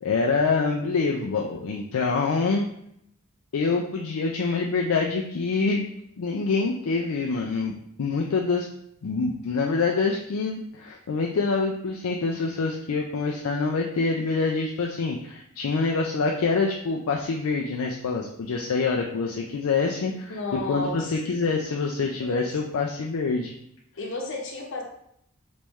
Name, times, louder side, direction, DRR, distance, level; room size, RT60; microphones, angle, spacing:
voice 1, 0.0-2.7 3.5-5.9 6.2-7.7 8.0-8.7 9.0-23.5, left 4 dB, 70° left, 0 dB, 0.4 m, -26 dB
voice 2, 20.1-21.1 22.0-22.5 24.0-24.8, left 2 dB, 55° left, 0 dB, 0.9 m, -33 dB
4.1 x 3.1 x 3.4 m, 0.74 s
head